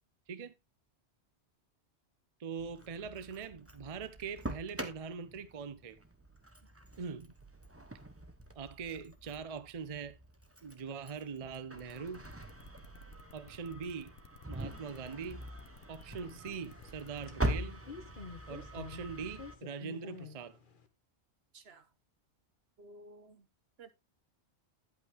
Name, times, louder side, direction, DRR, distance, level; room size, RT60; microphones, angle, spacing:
voice 1, 2.4-6.0 7.0-7.3 8.6-10.2 10.6-12.2 13.3-14.1 14.5-15.4 15.9-17.8 18.5-20.6, right 6 dB, 40° right, 0.7 m, -42 dB
Engine starting, 2.6-19.5, right 1 dB, 15° right, 1.1 m, -43 dB
sound 1, 11.8-17.3, left 7 dB, 70° left, 1.1 m, -57 dB
sound 2, 14.8-20.9, left 4 dB, 50° left, 1.3 m, -51 dB
voice 2, 21.5-21.9 22.8-23.5 23.8-23.9, right 2 dB, 65° right, 1.2 m, -54 dB
10.5 x 8.4 x 3.0 m
omnidirectional pair, 1.2 m